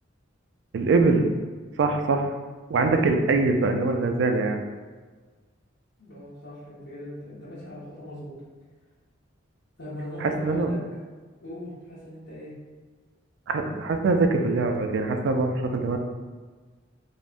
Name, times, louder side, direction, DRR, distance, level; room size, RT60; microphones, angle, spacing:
voice 1, 0.7-1.3 1.8-2.3 2.7-4.6 10.2-10.7 13.5-16.0, right 3 dB, 65° right, 5 dB, 0.3 m, -23 dB
voice 2, 6.0-8.4 9.8-10.8 11.4-12.6, left 1 dB, 85° left, -11 dB, 0.9 m, -40 dB
3.3 x 2.1 x 2.5 m, 1.4 s
head